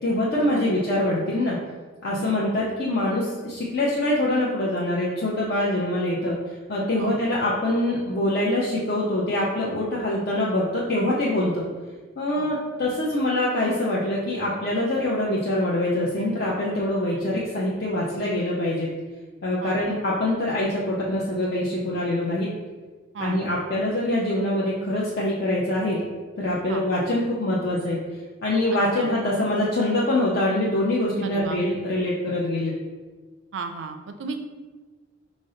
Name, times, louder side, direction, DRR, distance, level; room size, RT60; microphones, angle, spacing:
voice 1, 0.0-1.6 2.0-6.4 6.7-11.6 12.2-18.9 19.4-22.5 23.2-26.0 26.4-28.0 28.4-32.8, left 1 dB, 55° left, -5 dB, 0.5 m, -24 dB
voice 2, 31.2-31.6 33.5-34.4, right 4 dB, 65° right, 7 dB, 0.4 m, -34 dB
5.1 x 2.0 x 3.7 m, 1.3 s
head